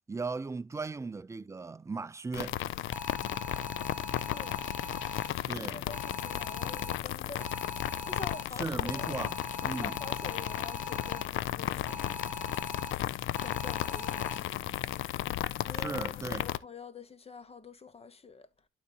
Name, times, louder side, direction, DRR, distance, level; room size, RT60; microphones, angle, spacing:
voice 1, 0.1-2.6 5.5-5.9 8.5-10.0 15.7-16.5, right 4 dB, 15° right, 0.4 m, -37 dB
sound 1, 2.3-16.6, left 14 dB, 80° left, 0.5 m, -34 dB
sound 2, 2.9-5.3 5.9-7.0 7.4-8.4 8.9-11.2 11.9-12.9 13.3-14.4, left 2 dB, 10° left, 4.0 m, -42 dB
voice 2, 4.1-4.7 5.5-7.4 8.0-9.1 9.7-12.0 13.4-14.5 15.6-18.5, left 4 dB, 30° left, 1.0 m, -46 dB
11.5 x 4.0 x 2.8 m
cardioid pair, 90°, 20 cm